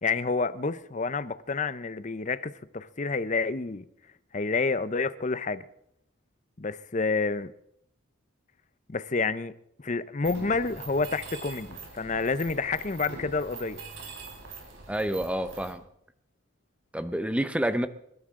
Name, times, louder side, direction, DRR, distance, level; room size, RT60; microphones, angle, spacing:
voice 1, 0.0-3.8 4.3-5.6 6.6-7.5 8.9-9.5 9.8-13.8, left 4 dB, 35° left, 0.6 m, -29 dB
Mechanisms, 10.2-15.7, right 3 dB, 70° right, 3.8 m, -43 dB
voice 2, 14.9-15.8 16.9-17.9, right 1 dB, 5° right, 0.7 m, -28 dB
28.5 x 12.5 x 3.7 m
head